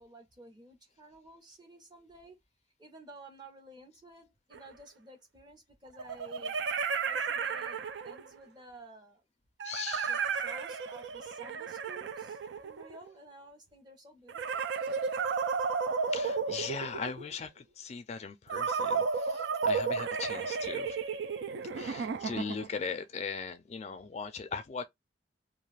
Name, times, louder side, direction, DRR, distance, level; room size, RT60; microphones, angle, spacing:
voice 1, 0.0-2.4 2.8-6.5 7.0-7.8 8.0-9.2 10.1-14.7, right 2 dB, 25° right, 0.7 m, -53 dB
sound 1, 4.5-4.6 6.0-8.4 9.6-13.1 14.3-17.3 18.5-22.8, right 5 dB, 75° right, 0.4 m, -33 dB
voice 2, 9.6-10.1 16.1-21.0 21.7-24.9, left 5 dB, 40° left, 0.3 m, -39 dB
2.4 x 2.3 x 3.1 m
head